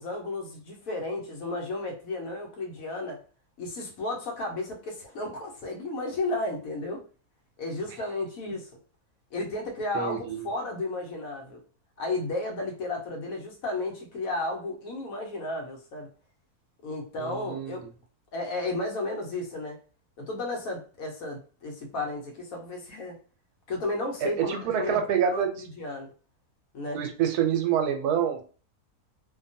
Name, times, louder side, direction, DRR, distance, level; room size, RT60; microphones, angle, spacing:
voice 1, 0.0-3.2 3.6-7.0 7.6-8.7 9.3-11.6 12.0-16.1 16.8-17.9 18.3-19.8 20.2-23.2 23.7-26.1 26.7-27.0, left 2 dB, 70° left, 1 dB, 1.1 m, -33 dB
voice 2, 9.9-10.4 17.2-17.9 24.2-25.5 26.9-28.4, right 9 dB, 80° right, 4 dB, 1.1 m, -27 dB
2.8 x 2.2 x 2.6 m, 0.38 s
omnidirectional pair, 1.6 m